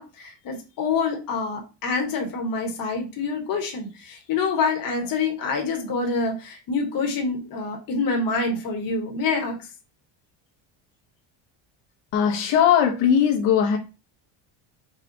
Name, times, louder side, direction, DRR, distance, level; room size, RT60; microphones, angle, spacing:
voice 1, 0.0-9.7, left 4 dB, 50° left, 3 dB, 1.2 m, -26 dB
voice 2, 12.1-13.8, left 8 dB, 85° left, 1 dB, 1.2 m, -19 dB
4.2 x 2.2 x 3.9 m, 0.31 s
cardioid pair, 125°, 45 cm